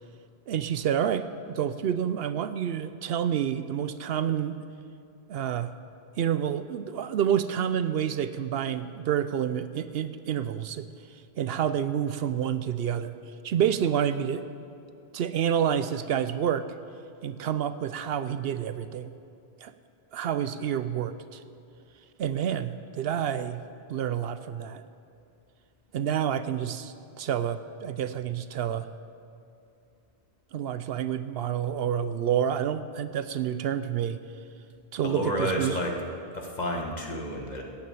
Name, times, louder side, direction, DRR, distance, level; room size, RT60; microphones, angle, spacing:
voice 1, 0.5-4.6 5.3-5.7 6.2-10.9 11.4-13.2 13.4-14.4 15.1-16.7 17.2-19.1 19.6-19.7 20.1-21.4 22.2-23.6 23.9-24.8 25.9-28.9 30.5-34.2 34.9-35.8, right 9 dB, 75° right, 12 dB, 0.8 m, -28 dB
voice 2, 35.0-35.9 36.3-37.6, equal, 45° left, 1 dB, 1.6 m, -30 dB
14.0 x 7.2 x 8.9 m, 2.6 s
omnidirectional pair, 1.1 m